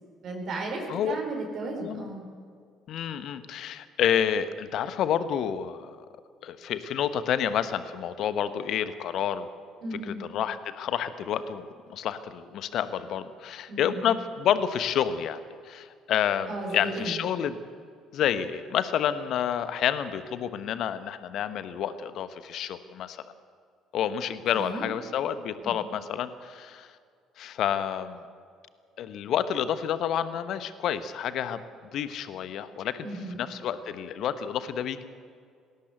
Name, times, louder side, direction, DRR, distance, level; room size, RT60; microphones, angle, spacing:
voice 1, 0.2-2.2 9.8-10.2 13.7-14.1 16.5-17.2 24.5-24.8 25.6-25.9 33.0-33.4, right 2 dB, 50° right, 1 dB, 4.6 m, -35 dB
voice 2, 2.9-6.0 6.4-9.5 10.1-15.4 15.6-17.6 18.1-23.2 23.9-26.9 27.4-28.2 29.0-31.6 31.9-35.0, left 9 dB, 55° left, 12 dB, 1.2 m, -29 dB
19.5 x 17.5 x 8.2 m, 2.2 s
figure-of-eight pair, 50°, 0 cm